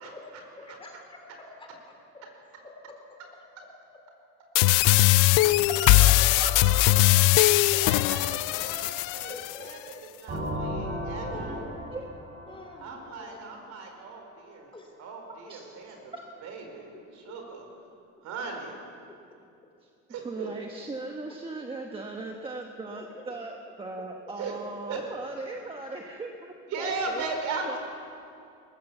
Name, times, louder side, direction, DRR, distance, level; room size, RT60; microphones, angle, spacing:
voice 1, 0.0-2.2 2.6-3.0 3.3-3.7 6.2-6.3 7.7-7.8 8.9-9.0 9.3-10.0 10.6-10.7 11.0-11.8 12.5-13.6 14.7-14.9 17.3-17.4 19.1-19.2 20.4-20.5 21.3-21.4 22.9-23.6 24.0-24.3 27.1-27.4, left 2 dB, 15° left, 2 dB, 3.4 m, -47 dB
sound 1, 4.5-9.6, left 17 dB, 85° left, 0.6 m, -20 dB
voice 2, 5.2-7.3 7.8-9.8 10.2-11.7 12.8-14.7 15.0-16.1 16.4-17.6 18.2-18.8 20.1-20.5 24.4-24.5 24.9-25.0 26.7-27.8, right 4 dB, 65° right, 3 dB, 4.8 m, -37 dB
sound 2, 10.3-14.0, equal, 40° right, 7.7 m, -35 dB
voice 3, 11.9-12.3 15.5-15.7 16.1-16.2 19.8-19.9 20.2-23.5 23.8-27.2 27.6-27.8, right 3 dB, 15° right, 2 dB, 1.2 m, -38 dB
22.5 x 19.5 x 7.2 m, 2.5 s
cardioid pair, 160°, 31 cm